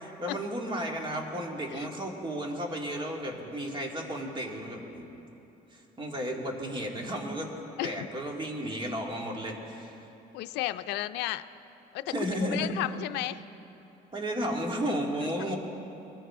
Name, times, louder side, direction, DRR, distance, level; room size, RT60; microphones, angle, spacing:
voice 1, 0.0-5.1 6.0-7.5 7.8-9.9 12.1-12.7 14.1-15.6, equal, 30° right, 1 dB, 2.2 m, -33 dB
voice 2, 10.3-11.4 11.9-13.4, left 15 dB, 90° left, 12 dB, 0.5 m, -33 dB
22.0 x 14.0 x 3.7 m, 2.9 s
cardioid pair, 110°, 17 cm